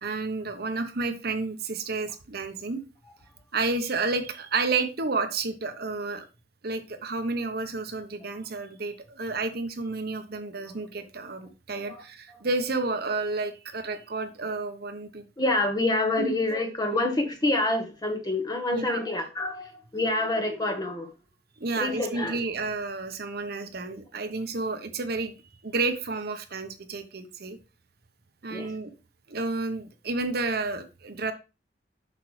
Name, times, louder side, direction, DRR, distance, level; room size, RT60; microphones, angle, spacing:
voice 1, 0.0-2.8 3.5-6.2 6.6-15.2 16.2-16.3 18.7-19.0 21.6-25.3 25.6-27.6 28.4-28.9 29.3-31.3, right 3 dB, 55° right, 8 dB, 1.0 m, -31 dB
voice 2, 15.4-21.1 21.8-22.4 28.5-28.7, left 2 dB, 20° left, 5 dB, 1.2 m, -27 dB
8.1 x 6.0 x 3.2 m, 0.29 s
head